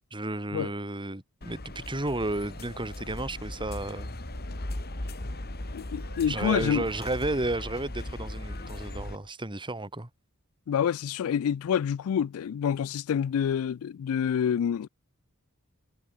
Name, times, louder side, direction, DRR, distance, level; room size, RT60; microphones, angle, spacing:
voice 1, 0.1-4.2 6.3-10.1, right 2 dB, 20° right, 2.1 m, -32 dB
sound 1, 1.4-9.2, left 1 dB, 45° left, 2.2 m, -38 dB
sound 2, 2.4-9.3, right 3 dB, 80° right, 6.1 m, -56 dB
voice 2, 5.7-6.8 10.7-14.9, left 8 dB, 70° left, 0.3 m, -27 dB
head